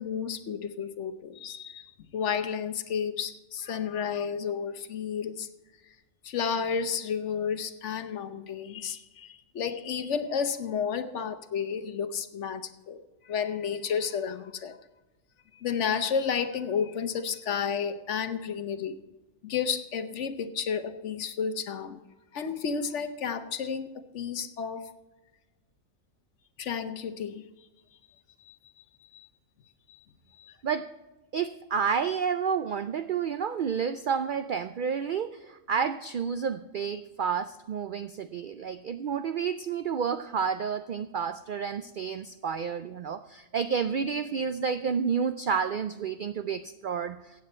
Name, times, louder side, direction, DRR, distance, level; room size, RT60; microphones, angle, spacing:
voice 1, 0.0-5.5 6.2-14.8 15.5-19.0 19.4-22.0 22.3-23.9 24.1-24.9 26.6-27.5 28.4-28.6 29.1-29.3 29.9-30.0 30.4-30.6, left 7 dB, 65° left, 10 dB, 1.1 m, -32 dB
voice 2, 31.3-47.4, right 6 dB, 70° right, 11 dB, 0.5 m, -30 dB
15.0 x 8.6 x 4.3 m, 1.1 s
omnidirectional pair, 1.4 m